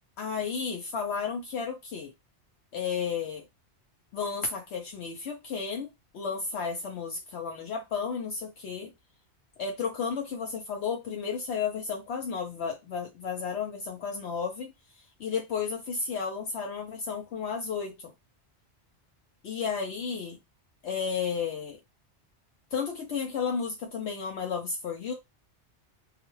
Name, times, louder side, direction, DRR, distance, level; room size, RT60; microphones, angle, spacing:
voice 1, 0.2-2.1 2.7-3.4 4.1-5.9 6.1-8.9 9.6-14.7 15.2-18.1 19.4-20.4 20.8-21.8 22.7-25.1, left 6 dB, 75° left, 0.9 m, -33 dB
2.4 x 2.3 x 3.0 m
omnidirectional pair, 1.2 m